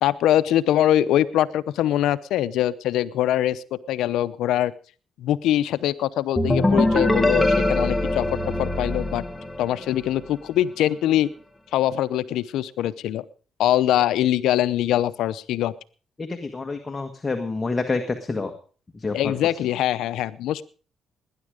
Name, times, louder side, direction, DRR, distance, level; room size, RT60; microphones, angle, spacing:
voice 1, 0.0-4.7 5.2-8.3 8.6-9.2 9.6-11.3 11.7-13.2 13.6-15.7 19.1-20.6, left 12 dB, 85° left, 16 dB, 0.7 m, -23 dB
sound 1, 6.4-10.1, left 1 dB, 5° left, 1.6 m, -22 dB
voice 2, 16.2-18.5 19.0-19.3, left 3 dB, 25° left, 5 dB, 1.6 m, -28 dB
19.0 x 10.5 x 5.0 m, 0.40 s
cardioid pair, 90°, 0 cm